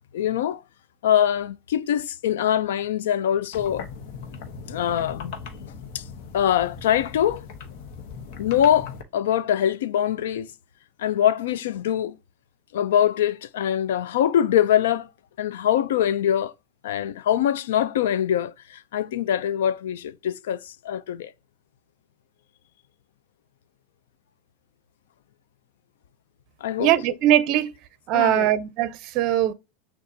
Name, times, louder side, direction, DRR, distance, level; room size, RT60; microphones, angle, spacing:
voice 1, 0.1-0.6 1.0-3.9 4.7-5.4 5.9-6.0 6.3-7.4 8.4-10.5 11.0-12.1 12.7-15.1 15.4-16.5 16.8-21.3 26.6-26.9 28.1-28.5, left 10 dB, 80° left, 0.4 m, -23 dB
sound 1, 3.5-9.0, left 6 dB, 65° left, 0.9 m, -39 dB
voice 2, 26.8-27.7 28.1-29.5, right 12 dB, 50° right, 0.5 m, -21 dB
6.4 x 2.4 x 2.7 m
supercardioid pair, 120°, 0 cm